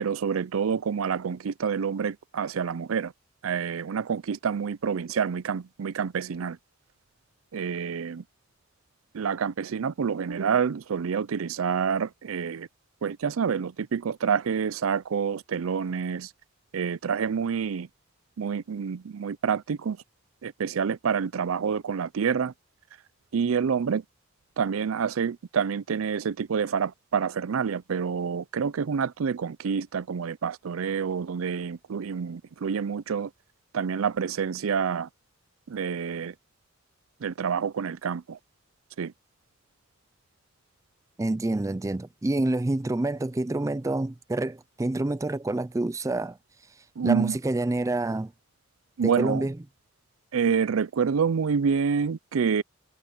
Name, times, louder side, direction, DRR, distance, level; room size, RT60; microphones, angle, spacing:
voice 1, 0.0-3.1 3.4-6.6 7.5-8.2 9.1-12.7 13.0-16.3 16.7-17.9 18.4-20.0 20.4-22.5 23.3-24.0 24.6-33.3 33.7-35.1 35.7-36.3 37.2-38.4 39.0-39.1 47.0-47.4 49.0-49.5 50.3-52.6, right 6 dB, 85° right, 0.5 m, -27 dB
voice 2, 41.2-46.4 47.0-48.3 49.0-49.6, right 2 dB, 15° right, 0.4 m, -27 dB
head